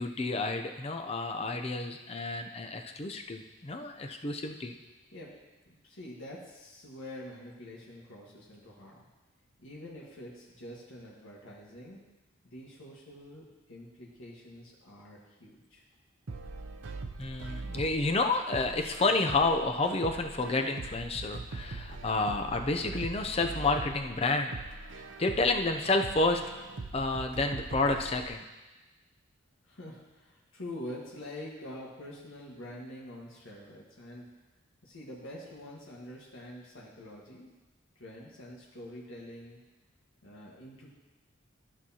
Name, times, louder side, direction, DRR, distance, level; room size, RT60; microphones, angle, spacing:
voice 1, 0.0-4.8 17.2-24.5 25.2-26.4 26.9-28.4, left 3 dB, 30° left, 5 dB, 0.5 m, -30 dB
voice 2, 5.7-9.0 9.6-12.0 12.4-15.8 29.6-34.3 34.8-37.5 37.9-39.6 40.2-40.9, left 1 dB, 75° left, -4 dB, 1.5 m, -46 dB
sound 1, 16.3-28.3, right 3 dB, 65° right, 0.6 m, -42 dB
13.5 x 6.2 x 2.9 m, 1.1 s
head